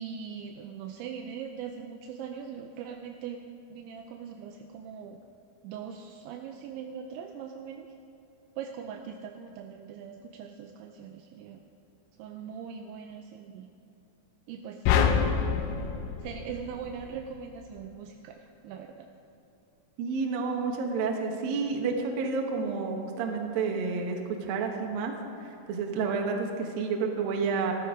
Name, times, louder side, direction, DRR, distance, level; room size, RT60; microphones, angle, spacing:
voice 1, 0.0-3.4 3.7-5.2 5.6-7.9 8.6-11.6 12.2-13.7 14.5-15.0 16.2-19.1, right 7 dB, 85° right, 4 dB, 2.6 m, -41 dB
sound 1, 14.9-17.3, left 7 dB, 90° left, 3.4 m, -26 dB
voice 2, 20.0-25.1 25.7-27.7, right 4 dB, 70° right, 2 dB, 2.2 m, -30 dB
15.0 x 13.0 x 5.0 m, 2.9 s
omnidirectional pair, 5.9 m